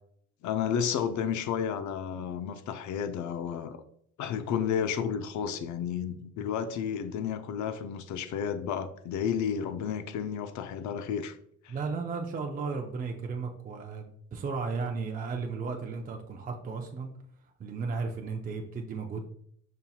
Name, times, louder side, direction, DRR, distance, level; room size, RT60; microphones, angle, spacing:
voice 1, 0.4-3.8 4.2-11.4 11.6-11.7, left 8 dB, 70° left, 0.5 m, -32 dB
voice 2, 11.7-17.1 17.6-19.2, right 4 dB, 30° right, 0.4 m, -34 dB
5.3 x 2.8 x 2.3 m
cardioid pair, 90°, 30 cm